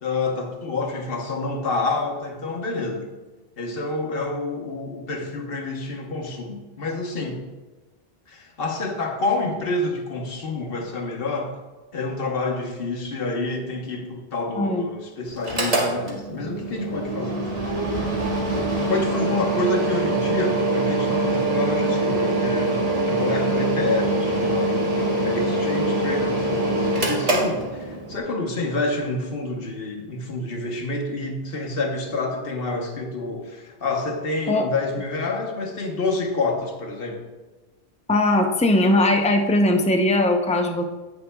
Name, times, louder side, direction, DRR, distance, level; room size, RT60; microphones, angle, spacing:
voice 1, 0.0-3.1 3.6-7.4 8.3-11.5 11.9-17.8 18.9-22.8 23.1-37.2, left 2 dB, 65° left, 2 dB, 1.2 m, -28 dB
voice 2, 14.5-14.9 34.5-34.7 38.1-40.8, left 1 dB, 10° left, 4 dB, 0.4 m, -19 dB
Mechanical fan, 15.4-28.2, right 2 dB, 35° right, 1.6 m, -24 dB
9.7 x 8.9 x 2.2 m, 1.2 s
omnidirectional pair, 1.1 m